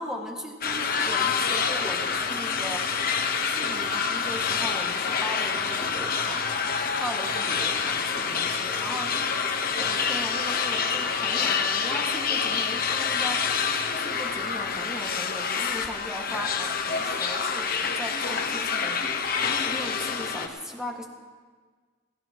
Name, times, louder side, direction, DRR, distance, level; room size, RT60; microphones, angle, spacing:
voice 1, 0.0-2.9 3.4-6.5 7.0-13.6 14.0-19.2 19.6-21.1, equal, 5° right, 0 dB, 1.9 m, -38 dB
sound 1, 0.6-20.5, left 6 dB, 50° left, 1.1 m, -27 dB
21.0 x 18.0 x 3.1 m, 1.5 s
head